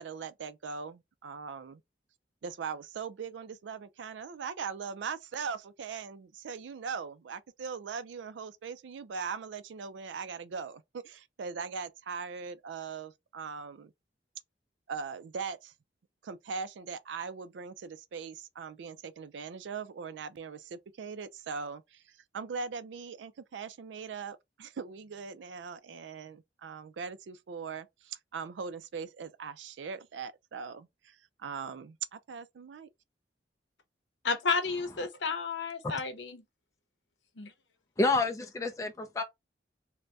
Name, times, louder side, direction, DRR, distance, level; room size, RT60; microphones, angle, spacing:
voice 1, 0.0-1.8 2.4-13.9 14.9-15.7 16.2-32.9, right 5 dB, 90° right, 0.4 m, -40 dB
voice 2, 34.2-36.4 37.4-37.5, left 4 dB, 85° left, 0.7 m, -31 dB
voice 3, 38.0-39.2, left 3 dB, 20° left, 0.3 m, -28 dB
2.6 x 2.1 x 3.3 m
head